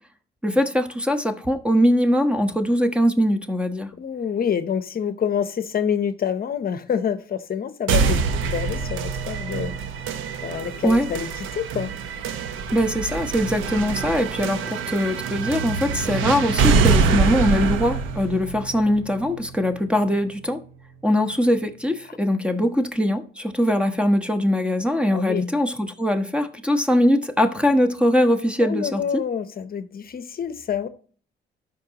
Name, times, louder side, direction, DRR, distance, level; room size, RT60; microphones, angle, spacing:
voice 1, 0.4-3.9 10.8-11.1 12.7-20.6 21.0-29.2, equal, 5° right, 1.2 m, -21 dB
voice 2, 4.0-8.2 8.4-9.8 10.4-11.9 25.1-25.4 28.6-30.9, left 8 dB, 50° left, 0.8 m, -27 dB
sound 1, 7.9-19.8, right 5 dB, 90° right, 1.0 m, -25 dB
13.0 x 5.5 x 2.9 m
cardioid pair, 90°, 20 cm